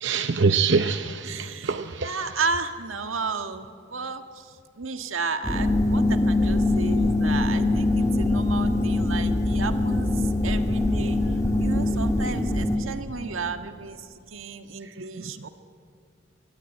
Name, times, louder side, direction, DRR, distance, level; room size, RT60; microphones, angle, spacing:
voice 1, 0.0-2.3 11.8-11.9 14.8-15.5, right 5 dB, 65° right, 0.7 m, -26 dB
voice 2, 1.3-4.2 4.8-10.2 10.4-11.2 11.6-14.0 14.3-15.5, right 4 dB, 90° right, 1.6 m, -33 dB
sound 1, 5.4-12.8, left 2 dB, 15° left, 2.2 m, -23 dB
26.0 x 22.0 x 9.0 m
head